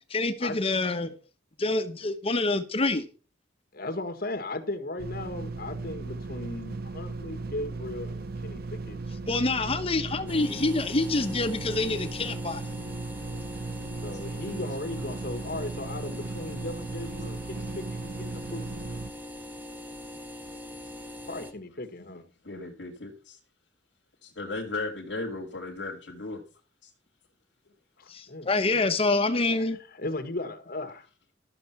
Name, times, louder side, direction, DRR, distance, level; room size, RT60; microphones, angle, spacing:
voice 1, 0.1-1.1 1.6-3.1 9.3-12.6 28.1-29.8, left 2 dB, 30° left, 0.9 m, -26 dB
voice 2, 3.7-9.0 14.0-18.7 21.2-22.2 28.0-28.6 29.5-29.6 29.9-31.1, left 2 dB, 55° left, 1.8 m, -37 dB
sound 1, 5.0-19.1, right 3 dB, 55° right, 0.8 m, -37 dB
Box Freezer Loop, 10.3-21.5, left 1 dB, 10° right, 1.8 m, -42 dB
voice 3, 22.5-23.4 24.2-26.4 26.8-26.9, left 3 dB, 70° left, 1.9 m, -36 dB
13.0 x 6.8 x 5.8 m
head